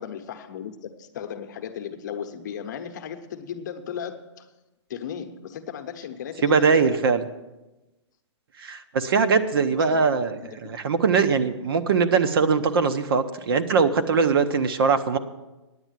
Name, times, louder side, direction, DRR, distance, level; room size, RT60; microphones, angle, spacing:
voice 1, 0.0-4.5 4.9-7.0 9.8-10.6, left 8 dB, 40° left, 7 dB, 0.9 m, -36 dB
voice 2, 6.4-7.2 8.6-10.4 10.6-15.2, right 5 dB, 55° right, 9 dB, 0.9 m, -21 dB
9.7 x 8.3 x 9.0 m, 1.1 s
hypercardioid pair, 175°, 15 cm